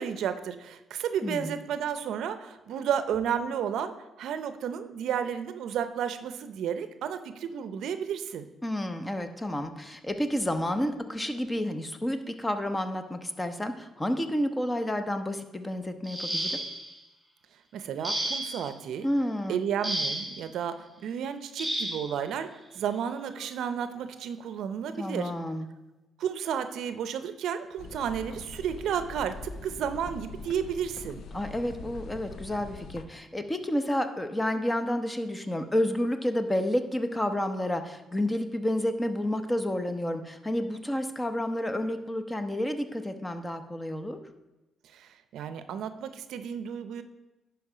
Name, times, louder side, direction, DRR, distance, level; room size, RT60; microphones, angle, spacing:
voice 1, 0.0-8.5 17.7-19.1 19.5-25.3 26.2-31.2 44.9-47.0, right 8 dB, 75° right, 10 dB, 0.6 m, -32 dB
voice 2, 1.2-1.5 8.6-16.6 19.0-19.6 25.0-25.7 31.3-44.2, left 1 dB, 15° left, 8 dB, 0.8 m, -30 dB
sound 1, 16.0-16.9 18.0-18.7 19.8-20.4 21.6-22.1 23.3-23.4 23.9-24.1, right 1 dB, 5° right, 2.6 m, -32 dB
sound 2, 27.8-33.0, left 4 dB, 70° left, 0.6 m, -43 dB
10.5 x 4.5 x 4.9 m, 1.0 s
cardioid pair, 90°, 0 cm